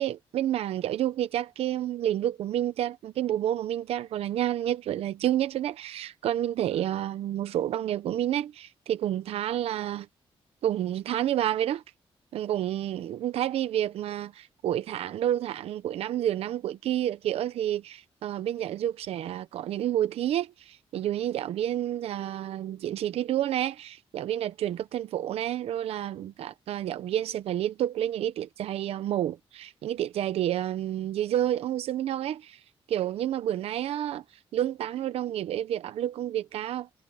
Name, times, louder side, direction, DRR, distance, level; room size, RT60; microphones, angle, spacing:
voice 1, 0.0-10.1 10.6-11.8 12.3-32.6 32.9-34.2 34.5-36.9, right 11 dB, 80° right, 0.8 m, -29 dB
wide cardioid pair, 170°, 10 cm